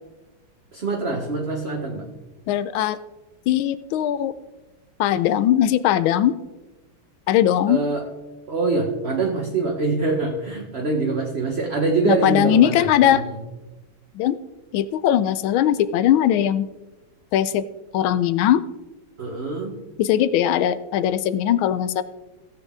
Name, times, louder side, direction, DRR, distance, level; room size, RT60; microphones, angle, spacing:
voice 1, 0.7-2.1 7.7-8.1 8.5-13.3 19.2-19.7, right 3 dB, 40° right, 1 dB, 1.1 m, -24 dB
voice 2, 2.5-3.0 3.5-4.3 5.0-6.3 7.3-7.8 12.0-13.2 14.1-14.4 14.7-16.7 17.3-17.6 17.9-18.6 20.0-22.0, left 11 dB, 80° left, 14 dB, 1.4 m, -19 dB
16.5 x 7.7 x 3.7 m, 1.1 s
omnidirectional pair, 2.2 m